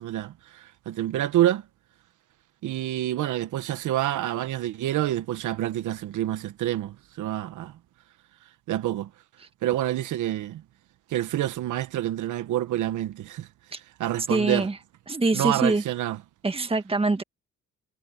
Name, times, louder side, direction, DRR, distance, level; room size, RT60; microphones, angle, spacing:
voice 1, 0.0-1.6 2.6-7.7 8.7-9.1 9.6-10.6 11.1-13.5 14.0-14.7 15.3-16.2, right 13 dB, 80° right, 1.2 m, -27 dB
voice 2, 14.3-14.8 15.1-15.8 16.4-17.2, right 3 dB, 20° right, 1.7 m, -24 dB
cardioid pair, 90°, 30 cm